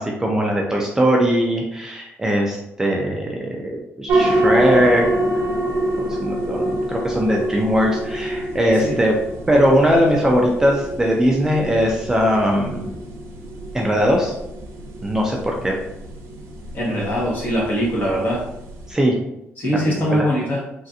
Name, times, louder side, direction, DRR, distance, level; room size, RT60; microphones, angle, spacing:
voice 1, 0.0-5.1 6.0-9.2 9.5-13.0 13.7-14.3 15.0-15.7 18.9-19.2 19.9-20.3, equal, 10° right, -1 dB, 0.4 m, -20 dB
sound 1, 4.1-18.9, right 1 dB, 85° right, 0.6 m, -26 dB
voice 2, 16.7-18.4 19.6-20.6, equal, 40° left, -5 dB, 1.4 m, -22 dB
3.1 x 2.5 x 2.7 m, 0.85 s
cardioid pair, 135°, 5 cm